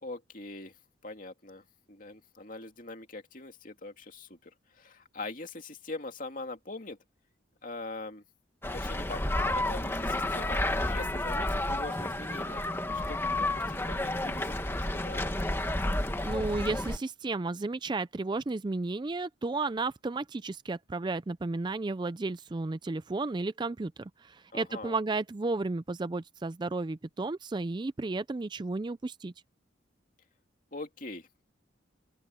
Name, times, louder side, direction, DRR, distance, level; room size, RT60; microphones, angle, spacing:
voice 1, 0.0-0.7 1.0-7.0 7.6-8.2 8.7-12.6 13.1-15.3 24.5-24.9 30.7-31.4, left 2 dB, 45° left, 2.7 m, -42 dB
sound 1, 8.6-17.0, left 1 dB, 10° left, 1.5 m, -31 dB
voice 2, 16.2-29.3, right 3 dB, 25° right, 0.4 m, -33 dB
open air
head